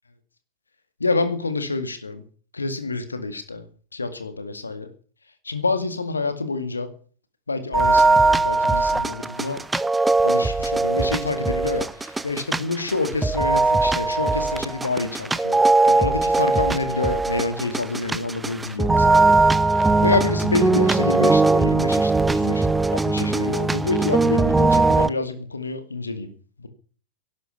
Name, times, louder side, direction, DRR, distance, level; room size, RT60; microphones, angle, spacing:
voice 1, 1.0-2.2 2.5-3.6 3.9-4.9 5.4-6.9 7.5-9.6 10.2-15.6 15.9-19.2 19.7-26.3, left 3 dB, 80° left, 10 dB, 2.1 m, -27 dB
sound 1, 7.7-25.1, right 3 dB, 10° right, 0.8 m, -20 dB
11.5 x 11.0 x 8.5 m, 0.44 s
figure-of-eight pair, 90°, 0 cm